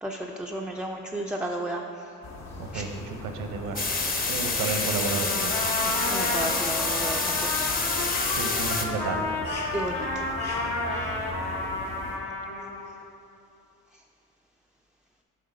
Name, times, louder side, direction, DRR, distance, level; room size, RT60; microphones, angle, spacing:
voice 1, 0.0-1.8 2.7-2.9 6.1-7.7 8.0-8.1 9.7-10.3, right 1 dB, 5° right, 0 dB, 0.3 m, -33 dB
sound 1, 2.2-12.2, left 2 dB, 55° left, 1.0 m, -40 dB
voice 2, 2.6-3.8 4.3-5.6 8.3-9.3, right 4 dB, 80° right, 5 dB, 0.8 m, -32 dB
sound 2, 3.8-8.9, left 3 dB, 30° left, 0.7 m, -28 dB
Trumpet, 5.0-12.9, left 2 dB, 75° left, 1.3 m, -31 dB
7.8 x 3.8 x 5.1 m, 2.6 s
cardioid pair, 90°, 32 cm